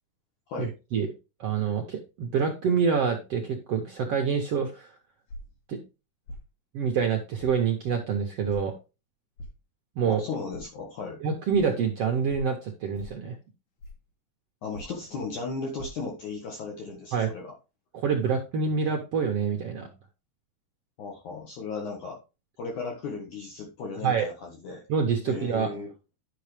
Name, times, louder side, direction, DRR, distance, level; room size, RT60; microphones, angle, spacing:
voice 1, 0.6-1.1 1.4-4.9 5.7-5.8 6.7-8.7 9.9-10.2 11.2-13.4 17.1-17.3 17.9-19.9 24.0-24.3 24.9-25.7, right 6 dB, 70° right, 2 dB, 1.4 m, -26 dB
sound 1, 5.3-5.6 6.3-6.5 7.4-7.6 8.5-8.6 9.4-9.6 10.5-10.7 11.5-11.6 12.3-12.5 12.9-13.2 13.8-14.1 14.7-15.0 15.8-15.9, equal, 85° left, 4.4 m, -42 dB
voice 2, 10.1-11.2 14.6-17.5 21.0-22.2 22.6-24.8 25.3-25.9, left 4 dB, 60° left, 1 dB, 2.7 m, -36 dB
11.0 x 5.9 x 3.3 m, 0.29 s
omnidirectional pair, 4.4 m